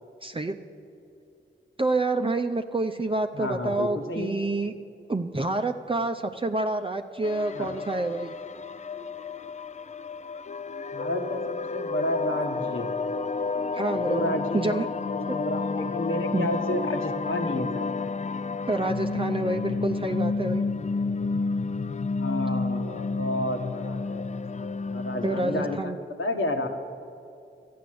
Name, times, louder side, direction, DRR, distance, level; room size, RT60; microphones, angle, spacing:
voice 1, 0.2-0.6 1.8-4.7 5.1-8.3 13.7-14.9 15.3-15.4 16.3-16.5 18.6-20.6 25.2-26.0, right 2 dB, 25° right, 5 dB, 0.6 m, -28 dB
voice 2, 3.3-4.4 7.5-7.7 10.9-12.9 14.0-17.9 22.1-26.7, left 1 dB, 75° left, 4 dB, 1.5 m, -31 dB
sound 1, 7.2-25.8, left 4 dB, 35° left, 0.4 m, -31 dB
12.5 x 9.4 x 7.8 m, 2.7 s
cardioid pair, 50°, 21 cm